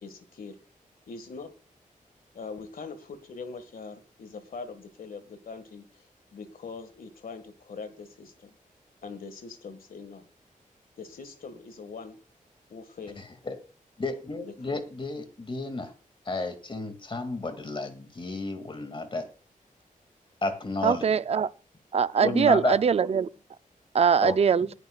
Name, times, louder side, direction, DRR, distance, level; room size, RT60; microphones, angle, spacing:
voice 1, 0.0-0.6 1.1-1.5 2.3-6.1 6.3-8.5 9.0-10.3 11.0-12.2 12.7-13.2 14.4-14.8, left 4 dB, 85° left, 1.7 m, -42 dB
voice 2, 14.0-15.9 16.3-19.3 20.4-21.1 22.2-22.8 24.2-24.4, left 3 dB, 35° left, 2.2 m, -31 dB
voice 3, 20.8-21.5 21.9-23.3 23.9-24.7, right 7 dB, 45° right, 0.4 m, -22 dB
19.0 x 9.7 x 2.3 m
wide cardioid pair, 115°, 14 cm